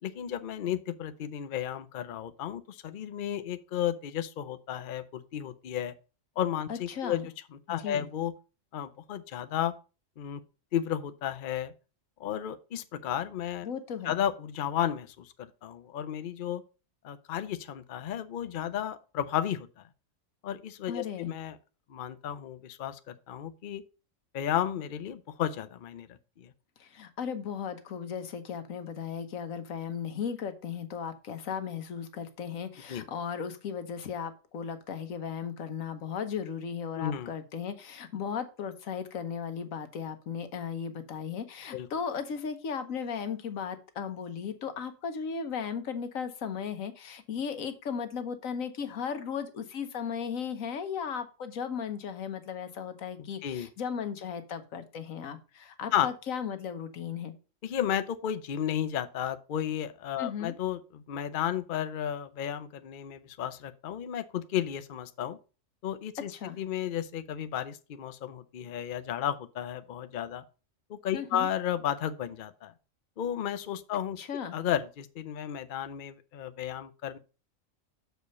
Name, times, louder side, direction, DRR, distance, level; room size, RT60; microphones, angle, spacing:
voice 1, 0.0-5.9 6.4-7.2 7.7-8.3 8.7-9.7 10.2-10.4 10.7-11.7 12.2-13.7 14.0-16.6 17.0-19.8 20.4-21.6 21.9-23.8 24.3-26.5 32.9-33.0 37.0-37.3 41.7-41.9 53.2-53.7 55.9-56.1 57.6-65.4 65.8-66.3 66.6-70.4 70.9-72.7 73.2-74.2 74.5-77.2, left 10 dB, 50° left, 0.6 m, -33 dB
voice 2, 6.7-7.3 7.7-8.1 13.6-14.2 20.9-21.3 26.8-57.3 60.2-60.5 66.3-66.6 71.1-71.5 74.2-74.6, left 7 dB, 85° left, 1.4 m, -36 dB
6.7 x 5.0 x 5.3 m
omnidirectional pair, 1.4 m